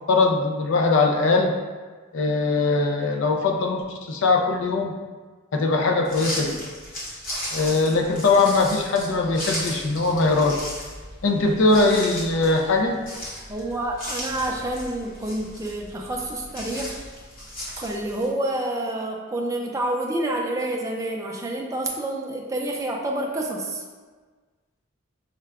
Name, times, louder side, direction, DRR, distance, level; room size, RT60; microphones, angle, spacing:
voice 1, 0.1-1.5 2.1-4.9 5.5-6.6 7.5-10.6 11.2-13.0, left 3 dB, 60° left, 2 dB, 0.5 m, -21 dB
sound 1, 6.0-18.3, equal, 40° left, 1.0 m, -36 dB
voice 2, 13.5-16.9 17.8-23.8, right 1 dB, 15° right, -1 dB, 0.4 m, -28 dB
5.6 x 2.2 x 3.5 m, 1.4 s
head